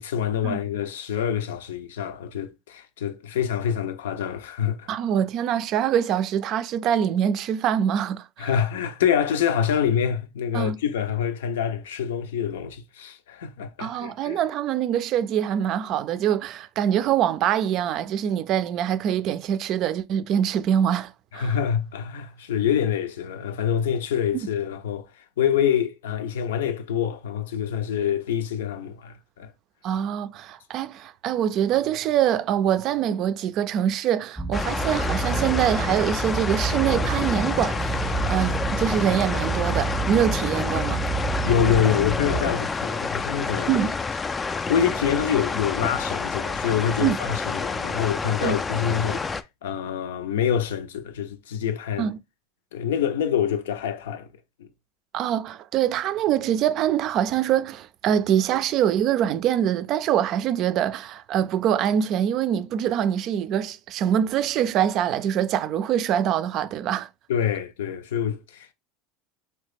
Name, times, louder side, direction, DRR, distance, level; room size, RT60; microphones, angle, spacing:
voice 1, 0.0-4.9 8.4-14.4 21.3-25.1 25.4-29.5 41.4-43.7 44.7-49.3 49.6-52.1 52.7-54.3 54.6-54.7 67.3-68.7, left 8 dB, 80° left, 0.5 m, -26 dB
voice 2, 4.9-8.5 10.5-10.8 13.8-21.5 24.3-24.5 29.8-41.0 43.7-44.0 47.0-47.2 48.4-48.6 52.0-52.2 55.1-67.1, right 10 dB, 50° right, 0.4 m, -24 dB
sound 1, 34.4-42.5, right 4 dB, 5° left, 0.7 m, -29 dB
sound 2, 34.5-49.4, left 4 dB, 20° left, 0.3 m, -29 dB
3.1 x 2.8 x 3.4 m
hypercardioid pair, 85°, 0 cm